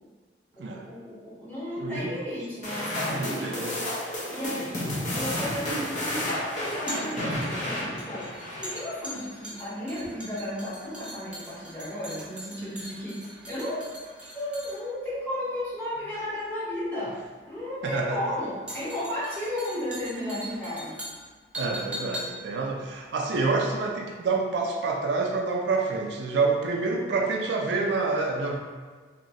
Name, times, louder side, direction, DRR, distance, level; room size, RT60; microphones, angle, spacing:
voice 1, 0.7-3.7 4.3-6.4 6.7-8.3 8.6-13.9 14.3-17.1 17.5-20.9, left 1 dB, 10° left, -11 dB, 1.1 m, -34 dB
voice 2, 1.8-2.3 3.1-3.8 4.7-4.9 17.8-18.4 21.6-28.6, right 3 dB, 75° right, 1 dB, 0.4 m, -28 dB
sound 1, 2.6-9.2, left 1 dB, 40° left, 0.7 m, -31 dB
sound 2, 6.6-24.0 24.3-24.4, equal, 5° right, 0.4 m, -42 dB
3.0 x 2.9 x 2.6 m, 1.5 s
head